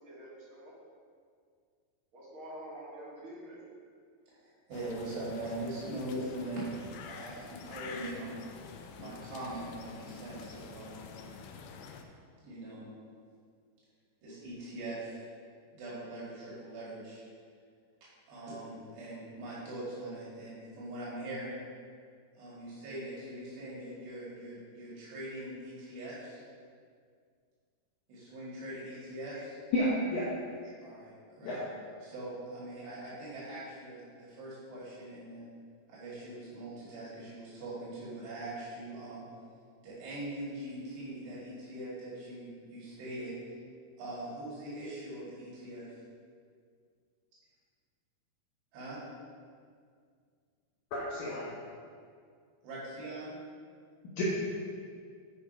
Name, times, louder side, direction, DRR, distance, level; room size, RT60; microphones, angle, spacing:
voice 1, 0.0-0.7 2.1-3.6, right 1 dB, 40° right, -8 dB, 2.2 m, -47 dB
voice 2, 4.3-8.4 9.0-11.1 12.4-12.9 14.2-15.3 15.7-17.2 18.3-21.6 22.3-26.4 28.1-29.6 30.8-31.6 32.0-35.5 35.9-39.3 39.8-43.3 44.0-45.9 48.7-49.0 52.6-53.3, right 1 dB, 80° right, -8 dB, 4.2 m, -42 dB
sound 1, 4.7-12.0, left 5 dB, 85° left, 2.2 m, -48 dB
voice 3, 29.7-30.3 31.4-31.6 50.9-51.5 54.2-54.3, left 1 dB, 70° left, -7 dB, 1.9 m, -31 dB
8.6 x 5.0 x 5.2 m, 2.1 s
omnidirectional pair, 4.9 m